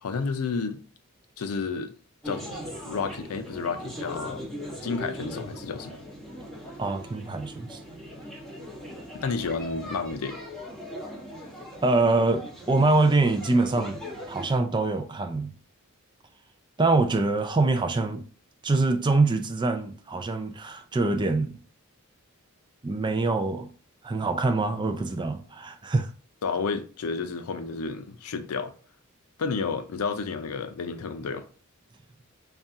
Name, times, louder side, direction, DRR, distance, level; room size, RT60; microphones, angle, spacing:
voice 1, 0.0-0.8 1.4-1.9 2.2-2.6 2.8-4.4 4.8-6.0 9.1-10.4 26.4-28.7 29.4-31.4, left 4 dB, 85° left, 0.5 m, -31 dB
sound 1, 2.2-14.6, equal, ahead, 0.9 m, -39 dB
voice 2, 6.8-7.8 11.8-14.0 14.3-15.5 16.8-18.2 18.6-21.5 22.8-23.7 24.0-26.1, right 3 dB, 20° right, 0.3 m, -24 dB
4.1 x 2.3 x 3.6 m
head